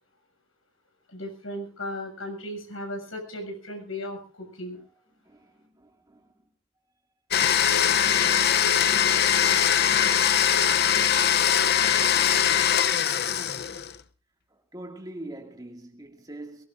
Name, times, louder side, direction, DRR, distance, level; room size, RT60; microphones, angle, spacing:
voice 1, 1.1-4.8, left 1 dB, 70° left, 6.9 m, -36 dB
voice 2, 5.1-6.4 14.5-16.7, right 1 dB, 15° right, 2.2 m, -43 dB
Domestic sounds home sounds, 7.3-14.0, left 9 dB, 45° left, 0.7 m, -22 dB
23.0 x 19.5 x 2.6 m
head